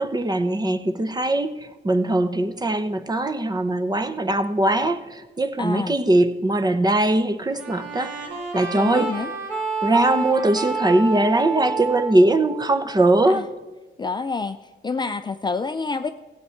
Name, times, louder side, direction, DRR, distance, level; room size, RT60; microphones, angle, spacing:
voice 1, 0.0-9.1 9.8-13.4, right 1 dB, 20° right, 10 dB, 0.9 m, -21 dB
voice 2, 5.6-6.0 8.7-9.3 13.3-13.5 14.0-16.1, left 4 dB, 20° left, 9 dB, 0.5 m, -28 dB
sound 1, 7.6-13.1, right 4 dB, 75° right, 2.6 m, -29 dB
15.5 x 8.2 x 4.5 m, 1.1 s
cardioid pair, 90°, 20 cm